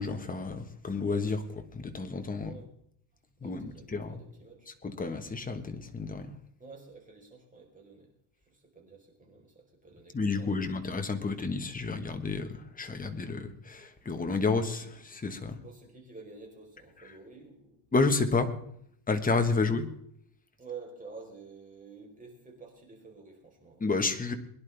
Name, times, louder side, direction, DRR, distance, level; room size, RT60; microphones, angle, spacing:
voice 1, 0.0-2.5 3.4-4.2 4.8-6.3 10.1-15.6 17.9-18.5 19.1-19.9 23.8-24.3, left 4 dB, 15° left, 7 dB, 1.4 m, -30 dB
voice 2, 2.3-2.7 3.4-4.7 6.6-8.1 8.4-10.7 15.6-17.8 19.5-19.6 20.6-23.8, right 4 dB, 15° right, 0 dB, 4.2 m, -49 dB
22.0 x 11.0 x 3.4 m, 0.70 s
cardioid pair, 135°, 48 cm